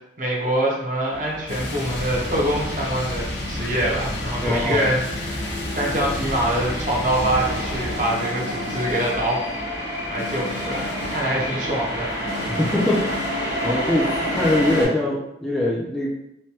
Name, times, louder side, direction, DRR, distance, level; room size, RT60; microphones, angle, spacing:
voice 1, 0.2-5.5 5.7-9.4 10.1-12.1, right 1 dB, 45° right, -3 dB, 0.7 m, -25 dB
sound 1, 1.1-14.8, equal, 80° right, 1.1 m, -30 dB
sound 2, 1.5-14.9, left 1 dB, 80° left, 0.7 m, -32 dB
voice 2, 4.4-4.9 11.3-11.5 12.5-13.1 13.6-16.1, left 1 dB, 5° left, -6 dB, 0.4 m, -22 dB
3.1 x 2.2 x 2.8 m, 0.82 s
head